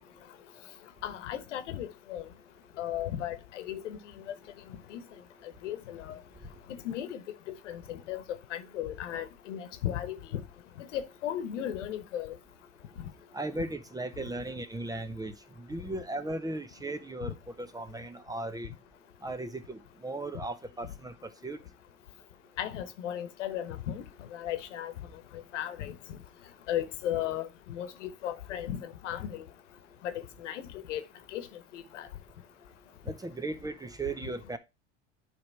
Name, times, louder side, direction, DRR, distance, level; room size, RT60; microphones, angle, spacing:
voice 1, 1.0-2.3 2.8-4.0 4.9-5.0 5.6-6.2 6.8-7.2 7.5-8.2 8.5-10.4 10.9-12.3 22.6-24.0 24.3-24.9 25.5-25.9 26.7-29.4 30.0-30.1 30.4-31.0 31.3-31.5 31.7-32.1, left 11 dB, 85° left, 1.2 m, -35 dB
voice 2, 13.3-18.7 19.2-21.6 33.0-34.6, right 2 dB, 10° right, 0.7 m, -37 dB
9.2 x 3.5 x 4.5 m
hypercardioid pair, 100°, 36 cm